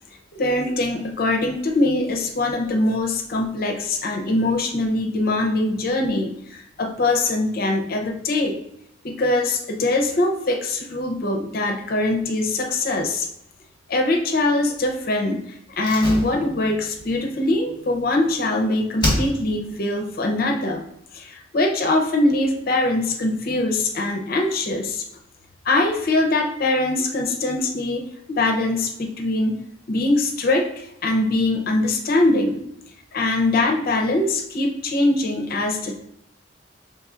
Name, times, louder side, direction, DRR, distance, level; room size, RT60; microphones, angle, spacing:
voice 1, 0.3-8.6 9.0-13.3 13.9-15.4 15.8-20.8 21.1-25.0 25.7-30.7 31.0-32.6 33.1-36.0, left 2 dB, 50° left, 2 dB, 0.5 m, -22 dB
Slam, 15.8-18.5 19.0-19.7 20.0-20.1, left 1 dB, 25° left, 1.3 m, -28 dB
5.3 x 3.1 x 2.4 m, 0.76 s
head